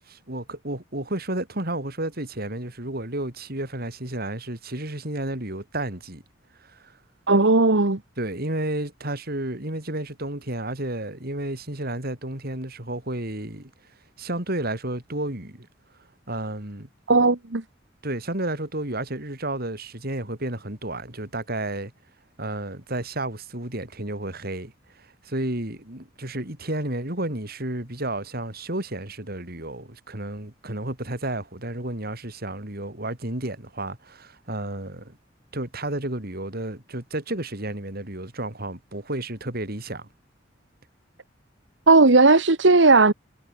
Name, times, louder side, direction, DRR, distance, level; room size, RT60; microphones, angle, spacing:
voice 1, 0.1-6.2 6.6-6.9 8.2-13.7 14.2-15.7 16.3-16.9 18.0-21.9 22.4-35.2 35.5-40.1, right 1 dB, 55° right, 4.9 m, -31 dB
voice 2, 7.3-8.0 17.1-17.6 41.9-43.1, right 3 dB, 70° right, 1.5 m, -16 dB
head